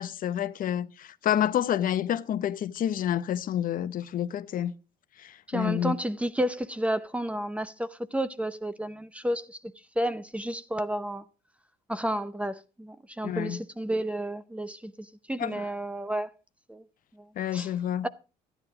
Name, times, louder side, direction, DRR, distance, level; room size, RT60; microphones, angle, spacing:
voice 1, 0.0-4.8 5.2-6.0 13.2-13.6 15.4-15.7 17.4-18.1, left 10 dB, 55° left, 0.9 m, -29 dB
voice 2, 5.5-9.6 10.0-11.2 11.9-14.9 15.3-16.3 16.7-16.8 17.5-17.7 18.0-18.1, right 1 dB, 5° right, 0.6 m, -31 dB
13.0 x 10.0 x 4.9 m
cardioid pair, 110°, 17 cm